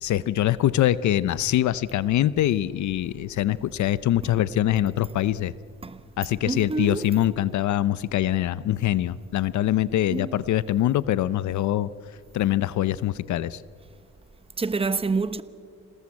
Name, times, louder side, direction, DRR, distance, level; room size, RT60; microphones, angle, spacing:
voice 1, 0.0-5.5 6.2-11.9 12.3-13.6, left 12 dB, 70° left, 0.7 m, -24 dB
voice 2, 6.5-7.0 10.1-10.3 14.6-15.4, right 4 dB, 20° right, 1.2 m, -27 dB
27.0 x 19.0 x 8.5 m
cardioid pair, 90°, 30 cm